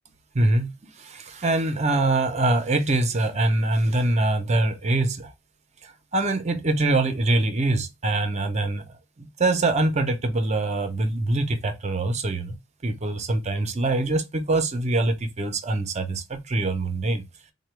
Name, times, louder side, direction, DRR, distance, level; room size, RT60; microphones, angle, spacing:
voice 1, 0.3-5.3 5.8-8.8 9.2-12.6 12.8-17.2, right 2 dB, 35° right, 0.6 m, -24 dB
3.7 x 2.2 x 3.2 m
head